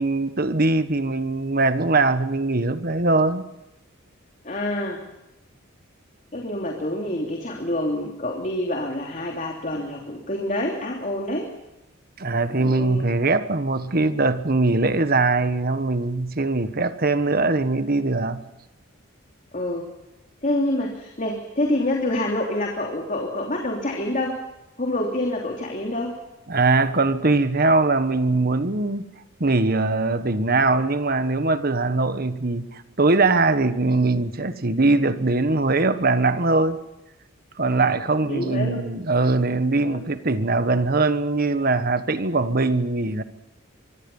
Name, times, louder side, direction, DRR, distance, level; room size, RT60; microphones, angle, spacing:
voice 1, 0.0-3.4 12.2-18.4 26.5-29.1 29.4-36.8 37.6-43.2, right 3 dB, 45° right, 1.4 m, -21 dB
voice 2, 4.4-5.0 6.3-11.5 12.6-13.1 19.5-19.9 20.4-24.4 24.8-26.2 38.3-38.8 39.8-40.0, left 1 dB, 40° left, 3.0 m, -27 dB
24.5 x 23.5 x 5.6 m
head